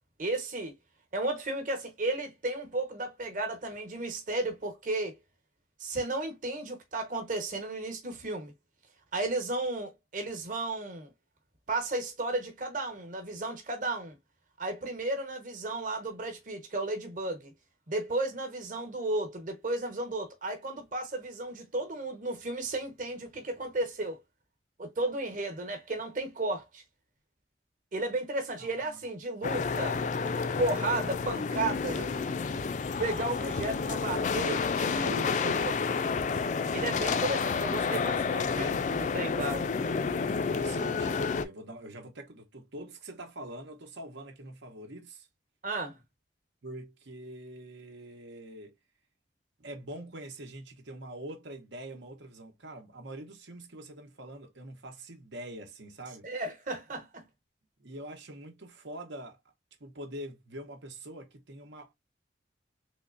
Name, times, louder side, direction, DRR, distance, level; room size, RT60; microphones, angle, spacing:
voice 1, 0.2-0.8 1.1-5.1 5.8-8.5 9.1-11.1 11.7-14.2 14.6-17.5 17.9-24.2 24.8-26.8 27.9-30.0 30.6-32.1 33.0-36.0 36.7-39.7 45.6-46.0 56.2-57.3, right 2 dB, 45° right, 1.1 m, -34 dB
voice 2, 28.6-29.0 40.5-45.3 46.6-48.7 49.6-56.3 57.8-59.4 59.8-61.9, right 1 dB, 80° right, 1.0 m, -44 dB
sound 1, 29.4-41.4, left 5 dB, 40° left, 0.3 m, -30 dB
3.7 x 3.2 x 2.5 m
head